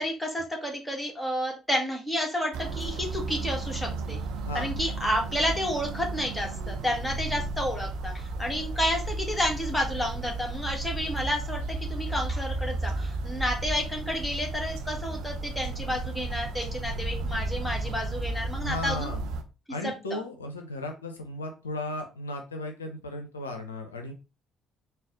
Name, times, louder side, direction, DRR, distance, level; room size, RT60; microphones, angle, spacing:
voice 1, 0.0-4.2 4.5-19.1 20.1-20.2, equal, 5° left, 0 dB, 1.3 m, -30 dB
sound 1, 2.5-19.4, right 2 dB, 65° right, 0.5 m, -33 dB
voice 2, 18.6-19.2 19.7-24.1, left 1 dB, 90° left, 4 dB, 0.4 m, -35 dB
3.9 x 2.1 x 3.5 m, 0.30 s
figure-of-eight pair, 50°, 0 cm